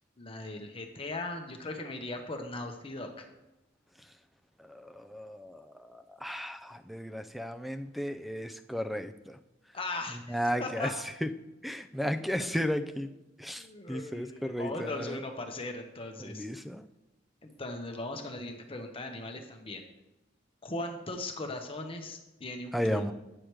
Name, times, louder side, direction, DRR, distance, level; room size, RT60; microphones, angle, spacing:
voice 1, 0.2-3.2 9.7-10.9 12.4-12.5 13.6-16.5 17.4-19.9 20.6-23.1, left 2 dB, 30° left, 4 dB, 0.9 m, -39 dB
voice 2, 4.6-9.4 10.3-10.9 11.2-11.3 11.6-13.1 13.4-15.2 16.2-16.9 22.7-23.1, equal, ahead, 9 dB, 0.4 m, -34 dB
8.8 x 4.9 x 4.6 m, 0.95 s
head